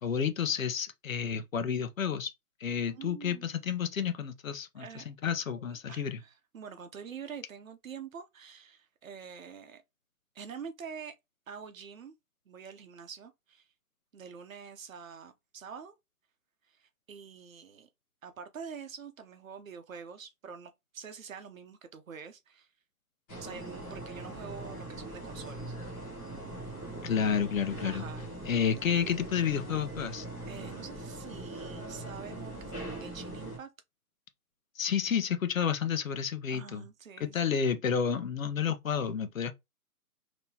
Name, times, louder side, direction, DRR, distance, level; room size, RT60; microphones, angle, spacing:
voice 1, 0.0-2.3 2.6-6.2 27.0-28.0 28.4-30.2 34.8-36.8 37.2-39.5, left 7 dB, 60° left, 0.8 m, -30 dB
voice 2, 2.9-3.5 4.7-5.1 5.9-9.8 10.3-11.1 11.5-12.1 12.5-13.7 14.1-15.9 16.7-17.9 18.2-22.7 23.4-25.8 27.8-28.3 30.5-33.7 36.5-37.6, right 6 dB, 60° right, 0.8 m, -46 dB
sound 1, 23.3-33.6, right 2 dB, 10° left, 0.9 m, -41 dB
3.6 x 2.9 x 2.8 m
hypercardioid pair, 155°, 45 cm